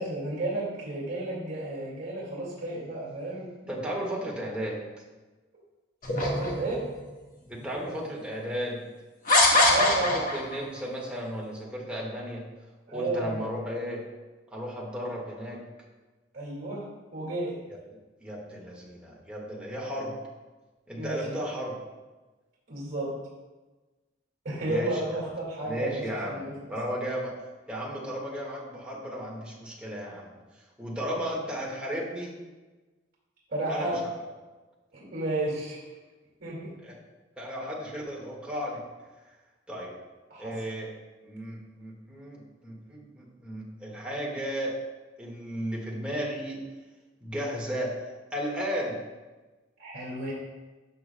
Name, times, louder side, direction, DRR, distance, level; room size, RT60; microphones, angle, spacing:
voice 1, 0.0-3.5 6.2-6.9 9.7-10.3 12.9-13.4 16.3-16.9 17.1-17.6 20.9-21.4 22.7-23.2 24.4-26.5 26.8-26.9 33.5-34.0 34.9-35.8 36.4-36.8 40.3-40.5 49.8-50.3, right 2 dB, 55° right, -6 dB, 2.3 m, -32 dB
voice 2, 3.6-4.8 7.5-8.8 9.8-12.4 12.9-14.0 14.5-15.6 18.2-20.1 20.9-21.7 24.7-25.2 25.6-27.3 27.7-30.3 30.8-32.3 33.7-33.9 36.8-36.9 37.4-38.8 39.7-39.9 40.4-40.9 41.2-44.8 45.2-46.6 47.2-47.9 48.3-49.0, equal, 5° right, -4 dB, 1.7 m, -34 dB
sound 1, 6.0-7.0 7.8-7.9 9.3-10.6, left 2 dB, 45° left, 1.4 m, -22 dB
12.0 x 6.8 x 2.2 m, 1.2 s
head